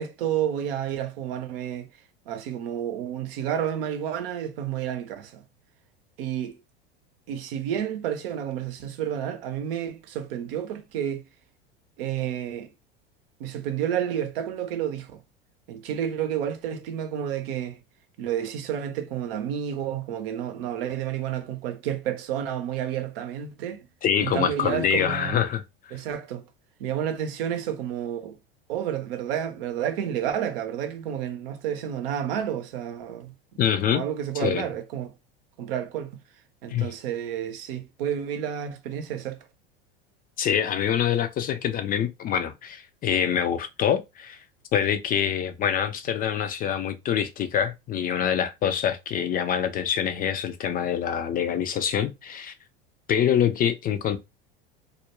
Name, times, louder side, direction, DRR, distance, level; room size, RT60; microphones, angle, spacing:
voice 1, 0.0-1.9 2.3-5.4 6.2-6.6 7.3-11.2 12.0-12.7 13.4-15.2 15.7-17.8 18.2-23.8 24.2-25.3 25.9-26.4 26.8-28.3 28.7-33.6 33.9-35.1 35.6-36.2 36.6-39.4, right 9 dB, 70° right, 0.7 m, -30 dB
voice 2, 24.0-25.6 33.6-34.0 34.4-34.6 36.7-36.9 40.4-44.4 44.7-52.5 53.1-54.2, left 9 dB, 30° left, 0.4 m, -25 dB
2.4 x 2.1 x 2.9 m
hypercardioid pair, 85°, 30 cm